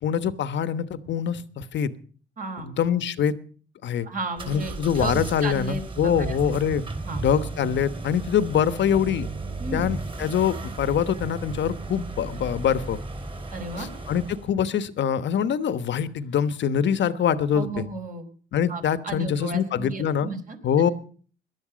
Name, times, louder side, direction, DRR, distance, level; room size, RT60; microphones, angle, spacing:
voice 1, 0.0-1.9 2.6-3.3 3.8-4.1 4.5-6.8 7.2-9.3 9.7-13.0 13.8-17.8 18.5-20.3 20.6-20.9, left 8 dB, 65° left, 13 dB, 1.2 m, -24 dB
voice 2, 2.4-2.7 4.0-6.4 7.0-7.2 9.6-9.9 13.5-13.9 17.5-18.3 18.7-20.6, right 3 dB, 45° right, 5 dB, 4.4 m, -34 dB
sound 1, 4.4-14.5, right 2 dB, 25° right, 3.9 m, -34 dB
19.0 x 12.0 x 5.1 m, 0.43 s
cardioid pair, 90°, 20 cm